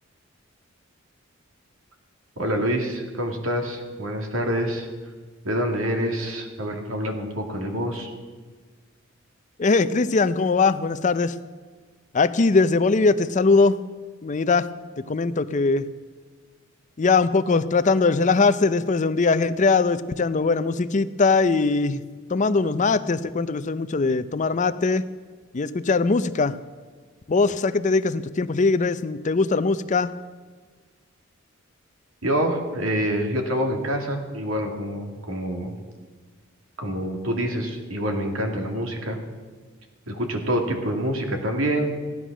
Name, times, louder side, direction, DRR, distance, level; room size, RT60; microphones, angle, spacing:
voice 1, 2.4-4.9 5.4-8.1 32.2-35.8 36.8-39.2 40.1-41.9, equal, 75° right, 3 dB, 2.3 m, -26 dB
voice 2, 9.6-11.3 12.1-13.8 14.2-14.7 15.0-15.9 17.0-22.0 22.3-25.0 25.5-26.6 27.3-30.1, left 4 dB, 35° left, 13 dB, 0.5 m, -21 dB
15.5 x 11.0 x 6.1 m, 1.5 s
head